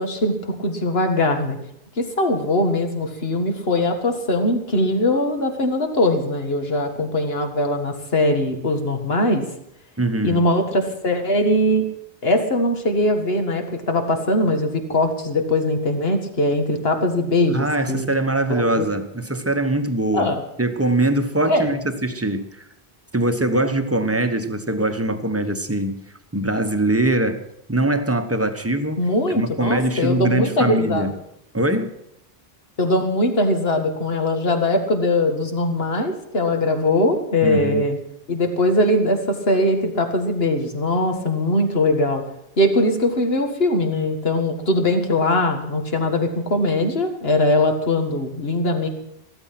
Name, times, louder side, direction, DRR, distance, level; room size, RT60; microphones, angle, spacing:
voice 1, 0.0-1.6 2.0-9.5 10.2-11.9 12.2-18.1 18.5-18.9 20.1-20.4 21.5-21.7 29.0-31.1 32.8-38.0 38.3-42.2 42.6-48.9, left 1 dB, 70° left, 5 dB, 2.0 m, -21 dB
voice 2, 10.0-10.4 17.5-22.6 23.1-29.1 29.3-31.2 31.5-31.9 37.4-37.9, right 1 dB, 15° right, 8 dB, 1.0 m, -22 dB
15.0 x 12.5 x 5.9 m, 0.78 s
omnidirectional pair, 1.0 m